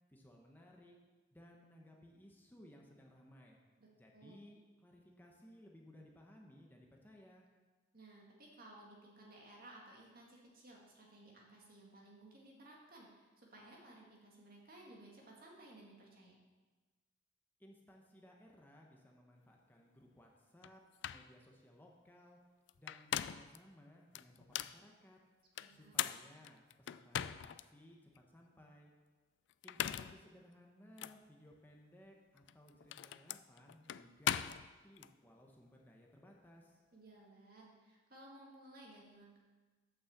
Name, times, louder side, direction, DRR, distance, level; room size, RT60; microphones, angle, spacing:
voice 1, 0.1-1.0 1.3-3.6 4.0-7.5 17.6-22.4 22.8-25.2 25.7-28.9 29.6-36.8, equal, 10° left, -1 dB, 0.9 m, -61 dB
voice 2, 3.8-4.5 7.9-16.3 25.6-26.1 36.9-39.4, right 1 dB, 55° right, -2 dB, 2.2 m, -58 dB
sound 1, 20.6-20.7 21.0-21.3 22.7-23.6 24.1-24.8 25.6-27.6 28.1-28.2 29.5-30.2 31.0-31.2 32.4-35.1, left 10 dB, 75° left, 0.3 m, -40 dB
8.6 x 6.2 x 7.2 m, 1.3 s
head